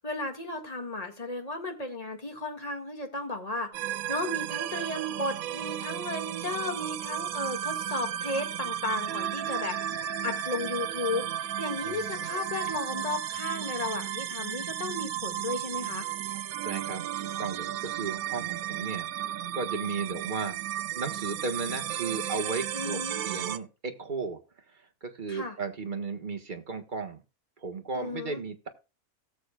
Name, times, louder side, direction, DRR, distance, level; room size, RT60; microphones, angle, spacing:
voice 1, 0.0-16.1 22.7-23.2 25.3-25.6 27.9-28.4, left 2 dB, 25° left, 5 dB, 2.0 m, -34 dB
sound 1, 3.7-23.6, right 10 dB, 80° right, 1.1 m, -34 dB
voice 2, 11.8-12.3 16.6-19.1 19.5-20.6 20.9-24.4 24.7-27.2 27.6-28.7, right 4 dB, 35° right, 6 dB, 1.5 m, -35 dB
18.0 x 7.2 x 2.3 m, 0.30 s
omnidirectional pair, 1.5 m